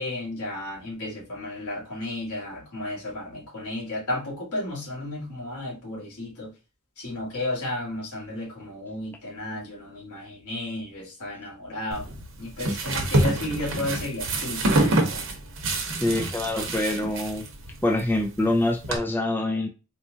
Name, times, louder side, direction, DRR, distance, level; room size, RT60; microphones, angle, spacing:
voice 1, 0.0-6.5 7.0-12.1 12.4-15.2, left 1 dB, 90° left, 1.7 m, -33 dB
sound 1, 11.9-19.0, right 2 dB, 60° right, 0.9 m, -27 dB
voice 2, 16.0-17.5 17.8-19.7, left 1 dB, 10° left, 0.4 m, -25 dB
4.2 x 2.4 x 2.7 m
head